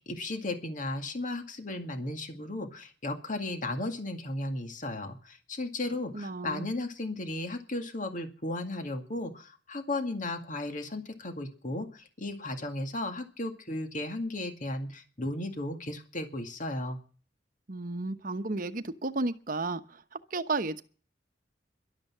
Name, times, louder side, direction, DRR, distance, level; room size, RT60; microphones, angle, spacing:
voice 1, 0.0-17.0, left 2 dB, 45° left, 2.1 m, -35 dB
voice 2, 6.1-6.7 17.7-20.8, right 3 dB, 50° right, 1.0 m, -33 dB
12.5 x 12.0 x 7.3 m
head